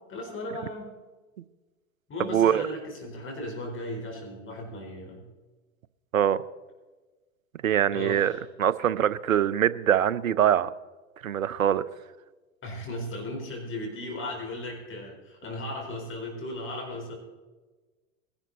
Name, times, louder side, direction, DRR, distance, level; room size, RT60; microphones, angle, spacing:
voice 1, 0.1-0.9 2.1-5.3 7.9-8.4 12.6-17.2, left 1 dB, 30° left, 0 dB, 4.4 m, -36 dB
voice 2, 2.3-2.6 6.1-6.4 7.6-8.3 8.6-10.7 11.2-11.8, right 10 dB, 85° right, 18 dB, 0.8 m, -23 dB
21.0 x 11.5 x 4.1 m, 1.3 s
hypercardioid pair, 90°, 40 cm